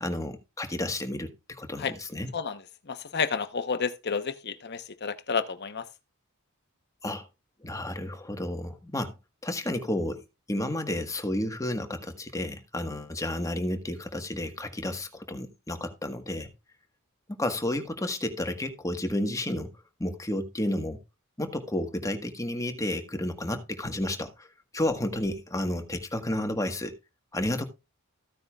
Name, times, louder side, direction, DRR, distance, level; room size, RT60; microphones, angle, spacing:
voice 1, 0.0-2.3 7.0-7.3 7.6-9.2 9.4-16.5 17.4-19.7 20.0-21.0 21.4-24.5 24.7-26.9 27.3-27.6, left 1 dB, 15° left, 1.5 m, -31 dB
voice 2, 2.9-5.8, left 5 dB, 50° left, 1.0 m, -30 dB
14.5 x 9.4 x 2.4 m
head